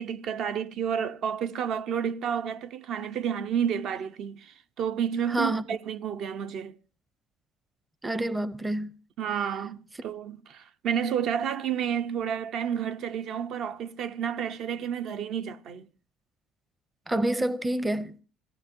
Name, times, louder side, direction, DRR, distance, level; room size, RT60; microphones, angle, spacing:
voice 1, 0.0-6.8 9.2-15.9, right 8 dB, 55° right, 0.8 m, -30 dB
voice 2, 5.3-5.6 8.0-8.9 17.1-18.1, right 1 dB, 10° right, 0.7 m, -27 dB
26.0 x 17.0 x 2.7 m
cardioid pair, 140°, 0 cm